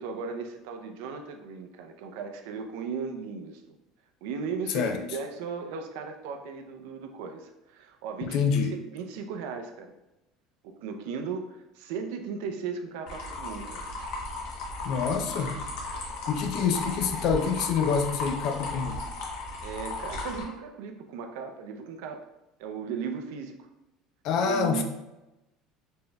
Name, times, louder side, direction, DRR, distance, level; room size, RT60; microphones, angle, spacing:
voice 1, 0.0-3.8 4.2-8.6 8.9-9.9 10.6-13.9 16.6-16.7 19.6-22.2 22.6-23.7 24.4-24.8, right 5 dB, 75° right, 5 dB, 0.5 m, -36 dB
voice 2, 8.2-8.7 14.8-15.6 16.3-19.0 24.2-24.8, left 6 dB, 45° left, 5 dB, 0.4 m, -26 dB
sound 1, 13.1-20.4, left 2 dB, 60° left, 0.9 m, -35 dB
4.3 x 3.2 x 2.2 m, 0.97 s
cardioid pair, 175°, 0 cm